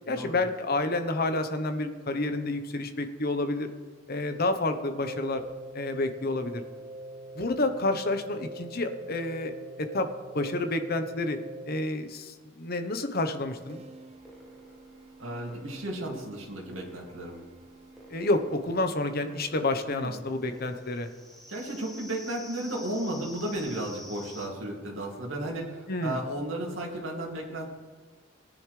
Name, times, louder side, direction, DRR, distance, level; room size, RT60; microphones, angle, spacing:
voice 1, 0.1-3.7 4.1-5.4 5.7-6.6 7.3-10.1 10.3-11.4 11.7-13.8 18.1-21.1 25.9-26.2, left 2 dB, 50° left, 8 dB, 1.0 m, -29 dB
sound 1, 5.1-11.9 13.7-18.8, right 1 dB, 30° right, 0.4 m, -45 dB
sound 2, 13.6-24.5, equal, ahead, 1.5 m, -50 dB
voice 2, 15.2-17.4 19.9-20.1 21.5-27.7, right 1 dB, 80° right, -2 dB, 2.4 m, -34 dB
18.0 x 10.5 x 3.3 m, 1.4 s
head